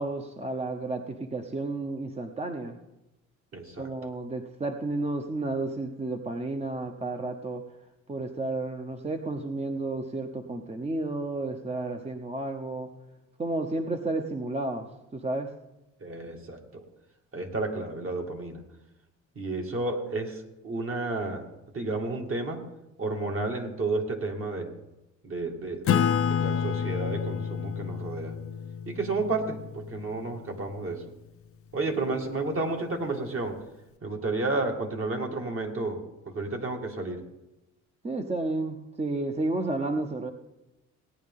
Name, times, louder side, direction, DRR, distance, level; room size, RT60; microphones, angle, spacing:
voice 1, 0.0-2.8 3.8-7.6 8.1-12.9 13.4-14.9 15.1-15.5 38.0-40.3, right 2 dB, 20° right, 5 dB, 0.8 m, -32 dB
voice 2, 3.5-4.1 16.0-16.8 17.3-18.6 19.4-21.5 21.7-22.6 23.0-24.7 25.2-28.3 28.9-31.0 31.7-33.6 34.0-36.0 36.3-37.2, right 3 dB, 45° right, 2 dB, 2.0 m, -31 dB
Acoustic guitar / Strum, 25.9-30.9, left 8 dB, 50° left, 0.6 m, -29 dB
17.5 x 9.4 x 3.7 m, 0.97 s
cardioid pair, 90°, 30 cm